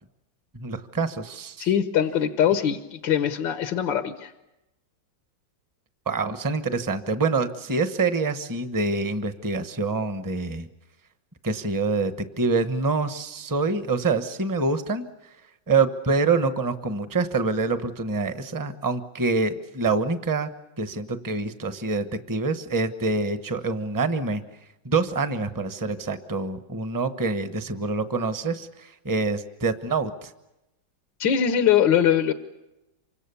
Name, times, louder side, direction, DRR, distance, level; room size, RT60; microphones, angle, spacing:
voice 1, 0.5-1.7 6.1-10.7 11.4-15.0 15.7-20.5 20.8-24.4 24.8-30.3, right 3 dB, 15° right, 10 dB, 0.9 m, -26 dB
voice 2, 1.6-4.3 31.2-32.3, left 9 dB, 85° left, 8 dB, 1.8 m, -22 dB
28.0 x 25.5 x 7.0 m, 0.97 s
omnidirectional pair, 2.0 m